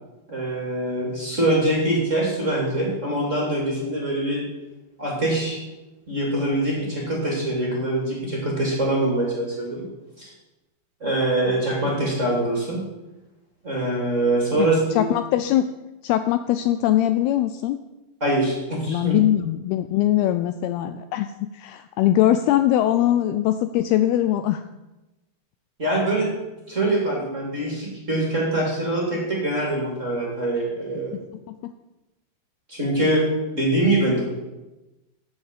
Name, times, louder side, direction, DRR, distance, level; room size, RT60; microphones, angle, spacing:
voice 1, 0.3-4.4 5.0-5.6 6.1-9.9 10.2-10.3 11.0-12.8 13.6-15.1 18.2-19.1 25.8-26.3 26.7-31.2 32.7-33.2 33.5-34.2, right 1 dB, 20° right, -2 dB, 2.4 m, -24 dB
voice 2, 15.0-15.7 16.0-17.8 18.9-24.6 31.5-31.7, left 12 dB, 80° left, 10 dB, 2.3 m, -21 dB
10.5 x 8.5 x 7.4 m, 1.0 s
omnidirectional pair, 4.8 m